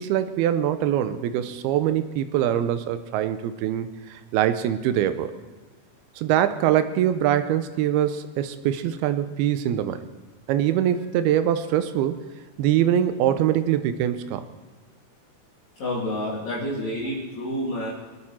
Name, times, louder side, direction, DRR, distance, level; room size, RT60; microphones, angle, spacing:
voice 1, 0.0-5.3 6.2-10.0 10.5-12.2 12.6-14.4, right 11 dB, 85° right, 10 dB, 2.6 m, -23 dB
voice 2, 15.8-17.9, left 1 dB, 45° left, -9 dB, 4.2 m, -29 dB
27.0 x 9.6 x 4.4 m, 1.4 s
omnidirectional pair, 4.5 m